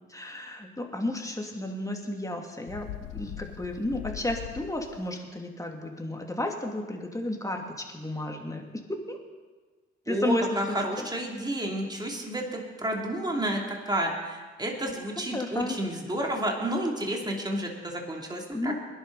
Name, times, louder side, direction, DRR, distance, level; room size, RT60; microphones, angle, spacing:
voice 1, 0.1-2.9 3.1-9.2 10.1-10.5 15.3-15.8 18.5-18.7, left 1 dB, 10° left, 2 dB, 2.5 m, -32 dB
Bird, 2.7-5.1, left 16 dB, 80° left, 0.5 m, -41 dB
voice 2, 10.1-18.7, right 1 dB, 15° right, 0 dB, 2.9 m, -31 dB
20.5 x 11.0 x 4.1 m, 1.4 s
hypercardioid pair, 55°, 31 cm